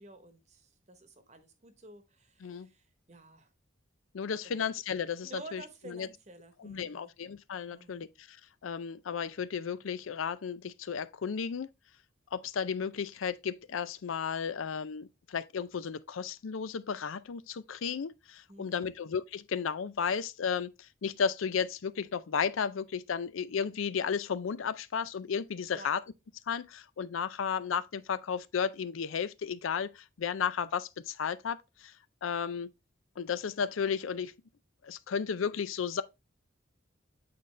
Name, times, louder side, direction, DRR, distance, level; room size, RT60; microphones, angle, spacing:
voice 1, 0.0-3.5 4.4-4.7 5.2-7.1 7.7-8.1 18.5-19.0 25.7-25.9, right 2 dB, 35° right, 1.0 m, -51 dB
voice 2, 4.1-6.1 6.6-8.4 8.6-11.7 12.3-26.0 26.5-31.9 32.2-32.7 33.2-34.3 34.8-36.0, left 6 dB, 90° left, 0.5 m, -34 dB
8.6 x 4.0 x 3.1 m
head